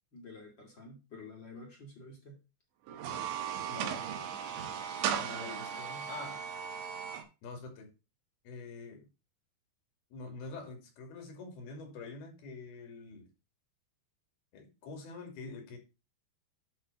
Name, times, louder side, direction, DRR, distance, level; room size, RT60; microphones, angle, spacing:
voice 1, 0.1-2.4, left 2 dB, 35° left, 2.3 m, -50 dB
sound 1, 2.9-7.2, right 8 dB, 90° right, 3.6 m, -37 dB
voice 2, 3.7-4.1 5.0-6.4 7.4-7.9 8.4-9.0 10.1-13.3 14.5-15.8, left 3 dB, 65° left, 4.5 m, -45 dB
11.0 x 4.1 x 5.7 m
omnidirectional pair, 5.0 m